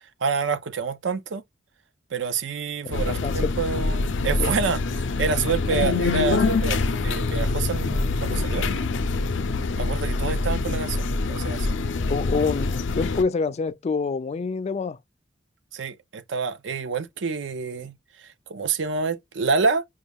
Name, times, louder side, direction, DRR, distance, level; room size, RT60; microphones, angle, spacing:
voice 1, 0.2-1.4 2.1-4.8 5.2-8.7 9.8-11.8 15.7-17.9 18.5-19.9, right 5 dB, 70° right, 0.5 m, -27 dB
voice 2, 2.8-3.5 4.4-4.5 12.1-15.0, left 4 dB, 35° left, 0.3 m, -27 dB
sound 1, 2.9-13.2, left 3 dB, 85° left, 0.5 m, -25 dB
5.0 x 2.3 x 3.5 m
head